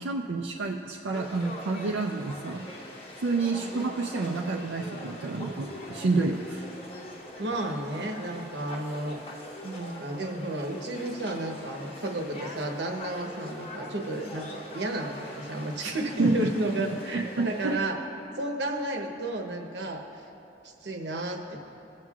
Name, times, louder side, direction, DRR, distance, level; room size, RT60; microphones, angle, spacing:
voice 1, 0.0-2.9 3.2-6.7 15.8-15.9 16.2-16.5 17.1-17.8, right 3 dB, 80° right, 0 dB, 0.5 m, -29 dB
Conversation / Crowd, 1.1-17.7, left 1 dB, 30° left, 1.1 m, -43 dB
voice 2, 7.4-9.2 9.6-18.0 18.3-20.3 20.6-21.6, right 1 dB, 65° right, 3 dB, 1.0 m, -32 dB
19.5 x 7.4 x 2.4 m, 2.9 s
head